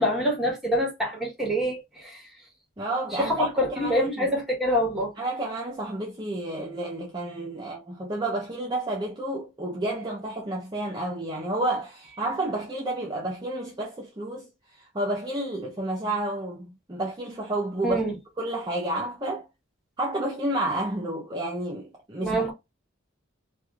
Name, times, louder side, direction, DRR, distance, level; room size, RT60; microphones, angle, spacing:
voice 1, 0.0-2.2 3.2-5.1 17.8-18.2 22.2-22.5, equal, ahead, 1.0 m, -26 dB
voice 2, 2.8-4.3 5.2-18.0 18.4-19.5 20.0-22.5, right 1 dB, 20° right, 0.5 m, -30 dB
3.2 x 2.3 x 2.3 m
head